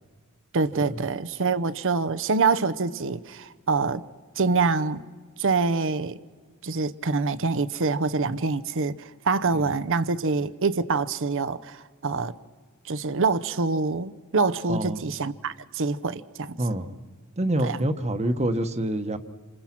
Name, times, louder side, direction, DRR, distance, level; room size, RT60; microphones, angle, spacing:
voice 1, 0.5-4.0 4.4-5.0 5.4-6.2 6.6-12.3 12.8-16.6 17.6-17.8, right 4 dB, 60° right, 0.8 m, -25 dB
voice 2, 14.7-15.0 16.6-17.0 17.4-19.2, right 1 dB, 30° right, 1.2 m, -27 dB
28.0 x 26.5 x 6.0 m
head